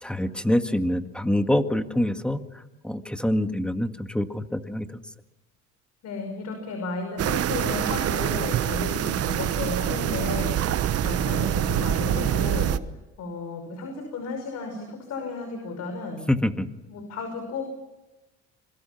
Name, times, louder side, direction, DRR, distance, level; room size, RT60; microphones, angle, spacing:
voice 1, 0.0-5.0 16.3-16.7, left 1 dB, 5° left, 8 dB, 1.8 m, -26 dB
voice 2, 6.0-12.7 13.2-16.3 16.9-17.7, left 3 dB, 65° left, 5 dB, 5.7 m, -33 dB
sound 1, 7.2-12.8, right 11 dB, 55° right, 1.2 m, -25 dB
26.5 x 23.0 x 6.0 m, 1.0 s
cardioid pair, 95°, 29 cm